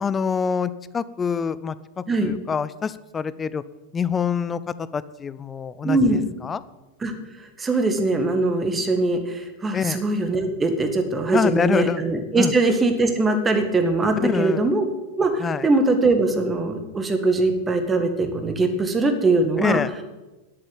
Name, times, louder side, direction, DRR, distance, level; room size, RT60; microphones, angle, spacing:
voice 1, 0.0-3.6 3.9-6.6 9.7-10.0 11.3-12.0 12.4-12.5 14.2-14.6 15.4-15.7 19.6-19.9, left 6 dB, 20° left, 17 dB, 0.5 m, -26 dB
voice 2, 5.8-6.2 7.0-7.1 7.6-14.9 15.2-19.8, right 2 dB, 15° right, 6 dB, 1.8 m, -21 dB
11.0 x 8.2 x 9.0 m, 1.1 s
figure-of-eight pair, 90°, 0 cm